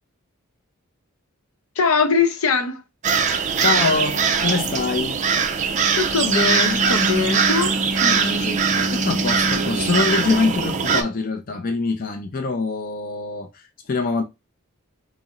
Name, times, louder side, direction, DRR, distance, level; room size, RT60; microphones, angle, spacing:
voice 1, 1.8-2.8 6.0-7.7 8.0-8.6, left 5 dB, 75° left, 0.7 m, -22 dB
sound 1, 3.0-11.0, right 5 dB, 35° right, 0.3 m, -21 dB
voice 2, 3.6-5.2 8.7-14.2, left 4 dB, 40° left, 0.4 m, -24 dB
4.0 x 2.0 x 3.6 m
head